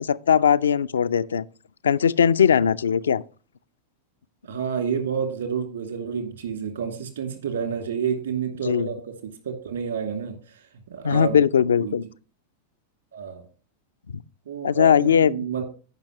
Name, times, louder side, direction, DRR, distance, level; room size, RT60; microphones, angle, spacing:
voice 1, 0.0-1.5 1.8-3.2 8.7-8.9 11.0-12.0 14.6-15.5, left 7 dB, 70° left, 0.3 m, -19 dB
voice 2, 4.4-9.0 9.4-10.6 10.9-11.4 11.8-12.0 13.1-13.4 14.5-15.7, right 7 dB, 70° right, 2.4 m, -29 dB
14.5 x 5.8 x 2.9 m
figure-of-eight pair, 90°, 0 cm